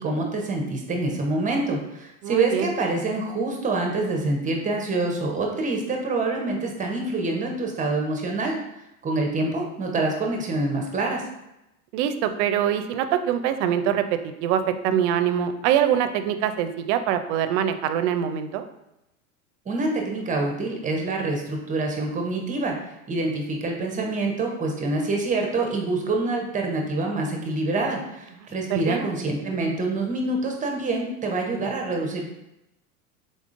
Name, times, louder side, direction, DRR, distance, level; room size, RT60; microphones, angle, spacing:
voice 1, 0.0-8.6 9.0-11.2 19.7-22.8 23.1-32.2, right 2 dB, 20° right, 1 dB, 0.6 m, -26 dB
voice 2, 2.2-2.7 11.9-18.7 28.7-29.1, right 9 dB, 60° right, 10 dB, 0.5 m, -24 dB
3.9 x 3.6 x 2.5 m, 0.88 s
hypercardioid pair, 105°, 42 cm